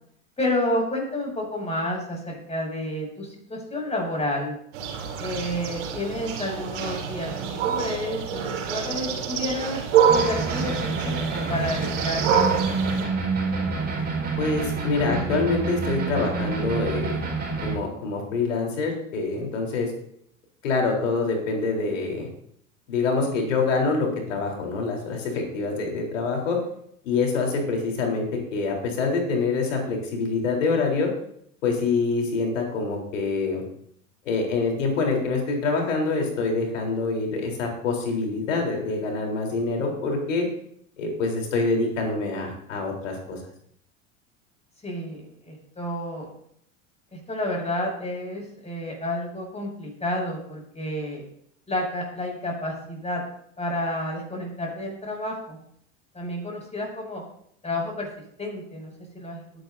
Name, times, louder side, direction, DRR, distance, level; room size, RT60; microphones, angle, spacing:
voice 1, 0.4-4.6 5.2-9.8 10.1-10.7 11.0-13.1 44.8-46.3 47.1-51.2 51.7-53.2 53.6-55.6 56.1-57.2 57.6-58.1 58.4-59.4, left 1 dB, 15° left, 0 dB, 6.5 m, -30 dB
sound 1, 4.7-13.0, right 7 dB, 65° right, 3.4 m, -26 dB
sound 2, 10.1-17.8, right 4 dB, 25° right, 4.7 m, -28 dB
voice 2, 14.4-17.2 17.6-19.9 20.6-22.3 22.9-26.6 27.0-31.1 31.6-33.6 34.3-40.4 41.0-43.4, left 3 dB, 75° left, 1 dB, 3.9 m, -25 dB
21.0 x 10.5 x 2.7 m, 0.69 s
figure-of-eight pair, 75°, 39 cm